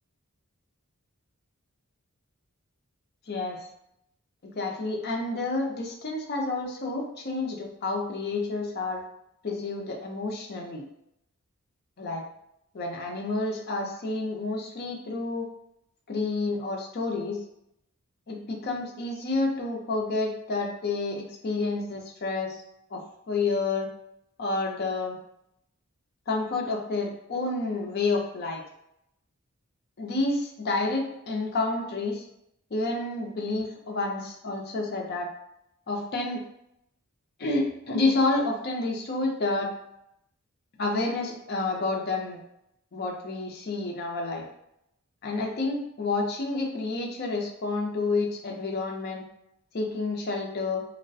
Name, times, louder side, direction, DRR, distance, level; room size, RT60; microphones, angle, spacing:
voice 1, 3.3-3.6 4.6-9.0 9.4-10.8 12.0-12.2 12.7-15.5 16.1-17.4 18.3-22.6 22.9-23.9 24.4-25.2 26.3-28.6 30.0-32.2 32.7-35.3 35.9-36.4 37.4-39.7 40.8-42.4 42.9-44.4 45.2-49.2 49.7-50.8, left 3 dB, 45° left, 0 dB, 0.5 m, -29 dB
2.3 x 2.1 x 2.5 m, 0.79 s
head